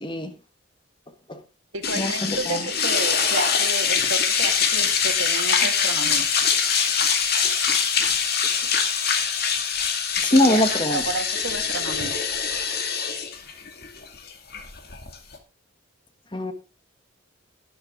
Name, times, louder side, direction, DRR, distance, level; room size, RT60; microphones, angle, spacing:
voice 1, 0.0-0.3 1.3-1.4 1.9-2.6 10.2-11.0 16.3-16.5, left 1 dB, 25° left, 8 dB, 1.4 m, -22 dB
voice 2, 1.7-6.3 10.3-12.2, right 3 dB, 80° right, 6 dB, 2.3 m, -31 dB
sound 1, 1.8-15.4, left 6 dB, 50° left, 2.2 m, -23 dB
12.0 x 11.0 x 3.7 m, 0.30 s
head